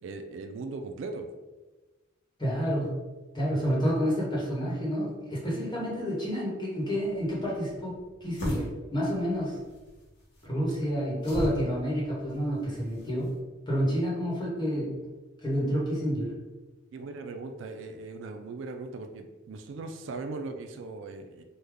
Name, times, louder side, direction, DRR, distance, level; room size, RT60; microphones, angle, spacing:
voice 1, 0.0-1.3 16.9-21.4, right 3 dB, 65° right, 6 dB, 0.3 m, -39 dB
voice 2, 2.4-3.0 3.3-9.6 10.4-13.3 13.7-15.0 15.4-16.3, equal, 20° left, -6 dB, 1.0 m, -29 dB
sound 1, 7.1-13.4, equal, 55° left, 0.9 m, -40 dB
3.3 x 2.2 x 3.5 m, 1.2 s
head